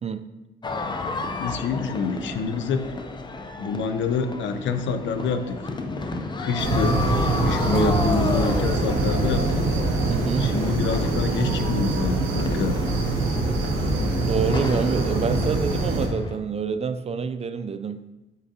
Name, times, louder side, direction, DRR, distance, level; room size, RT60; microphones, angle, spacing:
sound 1, 0.6-16.4, left 3 dB, 20° left, 0.6 m, -33 dB
voice 1, 1.4-2.9 3.5-5.6 6.4-7.0 7.4-9.7 10.4-12.8, left 5 dB, 70° left, 8 dB, 0.7 m, -27 dB
sound 2, 6.6-16.1, right 2 dB, 80° right, 1.2 m, -24 dB
voice 2, 10.1-10.5 14.2-18.0, right 5 dB, 30° right, 11 dB, 0.4 m, -27 dB
8.1 x 5.2 x 2.8 m, 1.0 s
cardioid pair, 90°, 20 cm